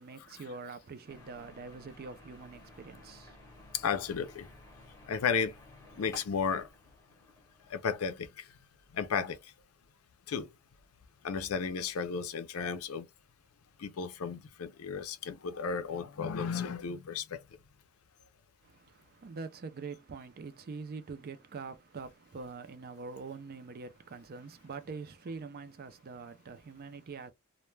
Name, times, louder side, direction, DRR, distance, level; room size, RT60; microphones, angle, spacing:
voice 1, 0.0-3.4 18.6-27.3, right 4 dB, 45° right, 0.4 m, -44 dB
sound 1, 1.1-8.3, left 2 dB, 15° left, 0.7 m, -54 dB
voice 2, 3.7-4.5 5.1-5.5 6.0-6.7 7.7-8.5 8.9-9.4 10.3-10.5 11.2-13.1 13.8-17.4, left 6 dB, 75° left, 0.5 m, -33 dB
2.2 x 2.1 x 3.1 m
head